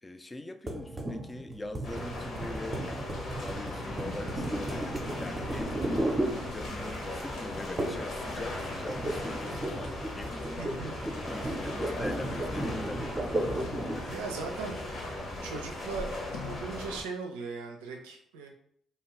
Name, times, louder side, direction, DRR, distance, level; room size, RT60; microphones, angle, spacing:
voice 1, 0.0-6.2 6.5-10.7 11.1-13.5, left 2 dB, 20° left, 8 dB, 0.3 m, -42 dB
sound 1, 0.7-7.0 7.8-8.2 8.4-14.1, right 1 dB, 30° right, 0.6 m, -35 dB
sound 2, 1.8-17.0, left 1 dB, 60° left, 0.9 m, -38 dB
sound 3, 4.8-17.2, left 4 dB, 90° left, 0.7 m, -54 dB
voice 2, 10.6-11.0 14.1-14.8 15.4-16.1 16.4-18.5, right 4 dB, 90° right, 2 dB, 0.4 m, -38 dB
2.9 x 2.3 x 3.0 m, 0.63 s
hypercardioid pair, 50°, 0 cm